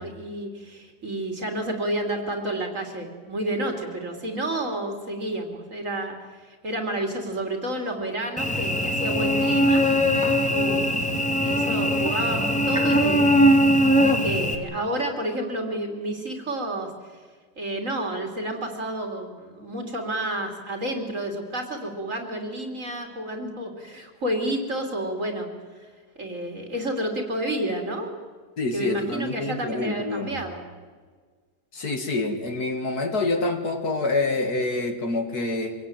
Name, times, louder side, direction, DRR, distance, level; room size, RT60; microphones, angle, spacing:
voice 1, 0.0-9.9 10.5-10.9 11.4-13.3 14.2-16.9 17.6-25.5 25.8-25.9 26.2-28.1 28.7-30.6, right 1 dB, 45° right, 4 dB, 3.4 m, -30 dB
Cricket / Buzz, 8.4-14.6, equal, 5° left, 1.8 m, -21 dB
voice 2, 28.6-30.3 31.7-35.7, left 2 dB, 60° left, 5 dB, 2.7 m, -27 dB
25.5 x 17.0 x 9.2 m, 1.5 s
omnidirectional pair, 1.8 m